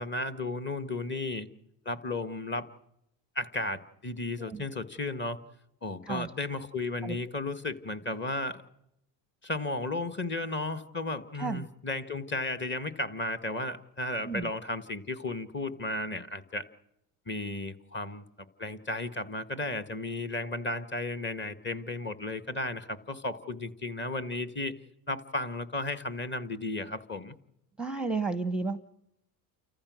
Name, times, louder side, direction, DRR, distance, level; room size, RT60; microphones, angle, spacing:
voice 1, 0.0-1.5 1.8-2.7 3.3-5.4 5.8-8.6 9.4-16.6 17.3-18.2 18.6-24.7 25.1-27.3, left 2 dB, 25° left, 9 dB, 1.7 m, -34 dB
voice 2, 27.8-28.8, right 4 dB, ahead, 12 dB, 0.9 m, -32 dB
29.0 x 14.5 x 6.3 m, 0.81 s
supercardioid pair, 90°, 47 cm